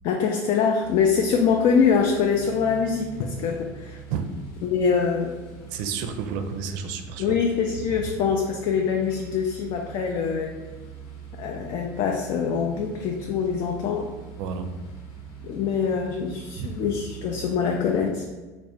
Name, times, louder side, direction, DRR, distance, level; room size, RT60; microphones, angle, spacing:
voice 1, 0.0-4.0 4.6-5.3 7.2-10.6 11.4-14.1 15.4-18.2, left 6 dB, 55° left, 2 dB, 0.4 m, -24 dB
sound 1, 0.8-18.1, right 6 dB, 70° left, 1.0 m, -43 dB
voice 2, 5.7-7.4 14.4-14.7 16.6-16.8, right 6 dB, 75° right, 7 dB, 0.4 m, -31 dB
3.3 x 2.1 x 4.1 m, 1.3 s
supercardioid pair, 110°, 10 cm